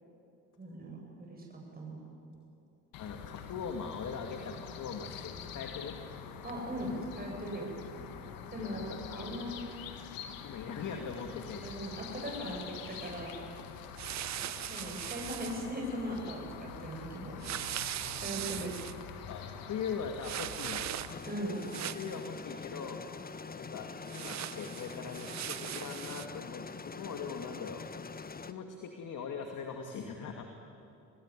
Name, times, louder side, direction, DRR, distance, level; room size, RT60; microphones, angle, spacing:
voice 1, 0.6-2.0 6.4-7.8 8.5-9.6 11.6-13.3 14.7-17.4 18.2-18.7 21.3-21.6, right 1 dB, 25° right, -1 dB, 7.7 m, -39 dB
sound 1, 2.9-21.2, left 7 dB, 75° left, 2.0 m, -46 dB
voice 2, 3.0-6.0 8.6-9.3 10.4-11.7 12.2-12.6 18.3-18.7 19.3-20.9 21.4-21.5 21.9-23.0 23.5-27.9 28.4-30.4, left 6 dB, 60° left, 4 dB, 2.4 m, -41 dB
sound 2, 14.0-15.7 17.4-19.0 20.2-21.3 21.6-22.2 24.1-26.3, right 12 dB, 50° right, 0.7 m, -39 dB
sound 3, 21.1-28.5, left 5 dB, 25° left, 1.2 m, -44 dB
25.5 x 19.0 x 10.0 m, 2.7 s
supercardioid pair, 65°, 35 cm